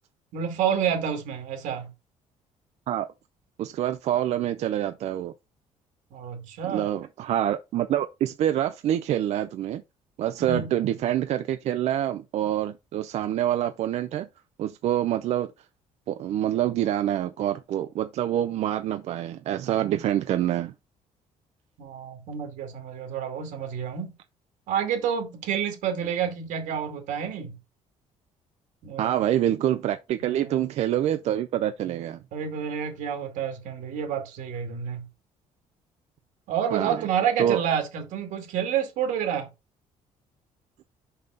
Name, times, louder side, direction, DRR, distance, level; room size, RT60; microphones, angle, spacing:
voice 1, 0.3-1.9 6.1-6.9 10.5-10.7 21.8-24.2 24.7-27.6 28.8-29.2 30.2-30.6 32.3-35.1 36.5-39.5, right 8 dB, 85° right, 2.4 m, -29 dB
voice 2, 3.6-5.3 6.7-9.8 10.2-14.3 14.6-15.5 16.1-20.7 29.0-32.2 36.7-37.0 37.4-37.6, right 11 dB, 60° right, 0.5 m, -26 dB
5.5 x 5.5 x 3.8 m
cardioid pair, 155°, 13 cm